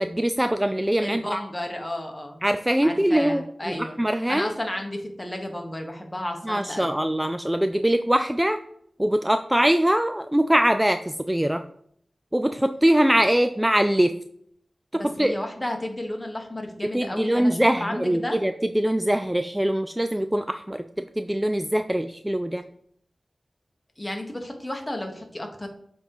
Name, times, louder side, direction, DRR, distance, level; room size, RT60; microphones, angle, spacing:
voice 1, 0.0-1.4 2.4-4.5 6.4-8.6 9.0-11.6 12.3-14.2 14.9-15.4 16.9-22.6, right 1 dB, 10° right, 9 dB, 0.4 m, -23 dB
voice 2, 1.0-2.4 2.8-4.0 4.3-6.9 14.9-18.4 24.0-25.7, left 1 dB, 20° left, 3 dB, 1.4 m, -32 dB
7.5 x 3.9 x 4.7 m, 0.66 s
wide cardioid pair, 60°, 0 cm